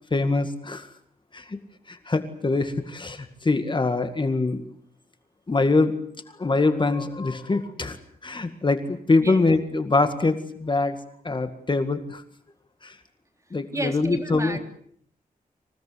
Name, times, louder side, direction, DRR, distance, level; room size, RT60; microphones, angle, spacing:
voice 1, 0.1-0.9 1.3-1.6 1.9-4.6 5.5-6.0 6.4-8.0 8.2-11.0 11.2-12.2 12.8-13.0 13.5-14.6, left 3 dB, 35° left, 9 dB, 2.0 m, -24 dB
voice 2, 13.7-14.6, right 2 dB, 20° right, 5 dB, 3.7 m, -32 dB
27.0 x 17.5 x 9.4 m, 0.63 s
wide cardioid pair, 110°, 15 cm